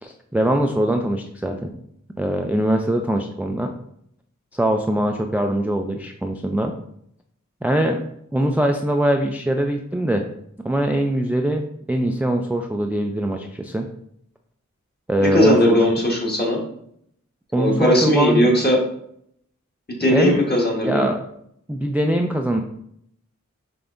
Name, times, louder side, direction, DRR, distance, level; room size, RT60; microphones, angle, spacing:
voice 1, 0.0-1.7 2.2-3.7 4.5-6.7 7.6-8.0 8.3-10.2 10.6-11.6 11.9-13.9 15.1-16.0 17.5-18.5 20.1-20.4 20.8-21.2 21.7-22.6, right 1 dB, 5° right, 2 dB, 0.3 m, -22 dB
voice 2, 15.2-16.6 17.5-18.8 20.0-21.0, left 1 dB, 35° left, -1 dB, 1.3 m, -18 dB
5.3 x 3.4 x 2.5 m, 0.71 s
wide cardioid pair, 55°, 30 cm